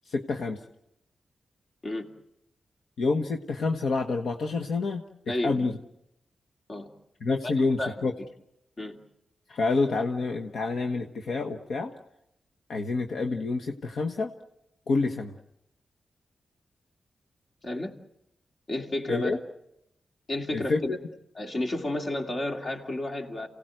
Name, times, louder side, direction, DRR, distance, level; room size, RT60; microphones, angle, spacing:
voice 1, 0.1-0.6 3.0-5.0 5.4-5.7 7.2-8.1 9.5-11.9 12.7-14.3 14.9-15.3 19.1-19.4 20.5-21.0, left 3 dB, 75° left, 4 dB, 1.2 m, -28 dB
voice 2, 5.3-5.7 6.7-6.9 7.8-8.1 8.8-9.0 17.6-17.9 18.7-19.3 20.3-21.0 21.3-23.5, left 1 dB, 50° left, 3 dB, 2.7 m, -31 dB
28.0 x 17.5 x 7.8 m, 0.83 s
cardioid pair, 75°, 0 cm